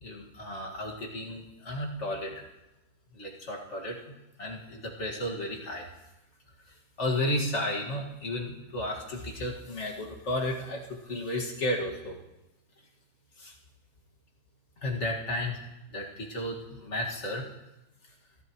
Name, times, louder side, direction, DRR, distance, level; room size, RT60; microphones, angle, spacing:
voice 1, 0.0-2.4 3.1-5.9 7.0-12.2 13.4-13.5 14.8-15.6 15.9-17.4, left 1 dB, 55° left, -1 dB, 2.3 m, -33 dB
26.5 x 11.0 x 3.1 m, 0.95 s
omnidirectional pair, 1.5 m